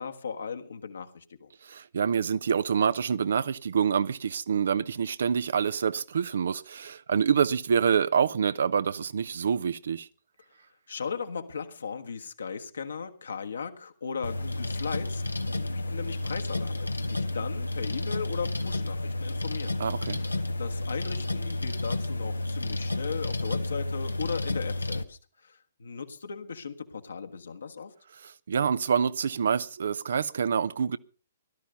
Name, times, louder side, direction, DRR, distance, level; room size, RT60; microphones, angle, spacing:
voice 1, 0.0-1.5 10.9-15.2 15.5-19.8 20.2-27.9, left 6 dB, 65° left, 1.6 m, -37 dB
voice 2, 1.6-10.1 19.8-20.2 28.2-31.0, right 7 dB, 60° right, 0.7 m, -26 dB
sound 1, 14.2-25.0, left 2 dB, 80° left, 1.1 m, -31 dB
17.0 x 12.5 x 5.4 m
figure-of-eight pair, 120°, 0 cm